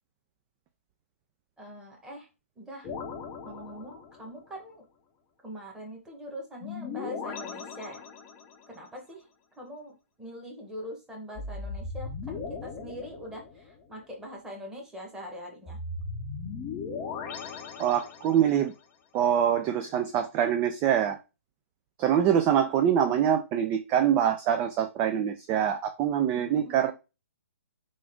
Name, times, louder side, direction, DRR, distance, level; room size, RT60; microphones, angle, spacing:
voice 1, 1.6-2.3 2.6-2.9 3.4-4.8 5.4-8.0 8.7-9.2 9.6-15.8 26.3-26.9, equal, 10° right, 1.1 m, -43 dB
sound 1, 2.8-4.4 6.6-8.7 11.4-13.9 15.7-18.6, left 4 dB, 25° left, 0.6 m, -38 dB
voice 2, 17.8-18.7 19.1-21.2 22.0-26.9, right 9 dB, 25° right, 0.3 m, -24 dB
3.7 x 2.5 x 3.5 m
hypercardioid pair, 135°, 8 cm